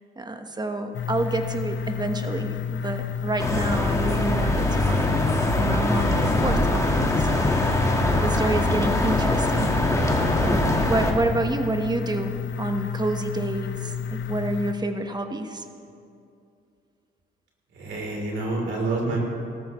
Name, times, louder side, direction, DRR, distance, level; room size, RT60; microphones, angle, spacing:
voice 1, 0.2-5.3 5.6-7.5 8.2-9.7 10.4-15.6, right 2 dB, 20° right, 6 dB, 1.1 m, -28 dB
sound 1, 0.9-14.7, left 7 dB, 65° left, 0.7 m, -31 dB
sound 2, 3.4-11.1, left 1 dB, 15° left, 1.6 m, -23 dB
voice 2, 17.7-19.2, right 2 dB, 70° right, -1 dB, 3.3 m, -27 dB
18.0 x 13.5 x 3.1 m, 2.5 s
cardioid pair, 85°, 20 cm